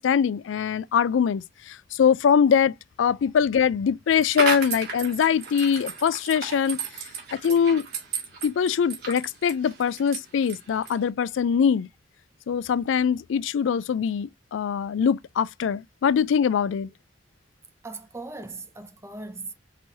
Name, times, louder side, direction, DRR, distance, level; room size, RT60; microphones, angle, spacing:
voice 1, 0.0-6.8 7.3-7.8 8.4-11.9 12.5-16.9, left 7 dB, 80° left, 0.3 m, -23 dB
sound 1, 4.1-11.1, right 5 dB, 55° right, 2.1 m, -34 dB
voice 2, 17.8-19.5, right 3 dB, 15° right, 0.6 m, -38 dB
5.8 x 3.1 x 2.7 m
head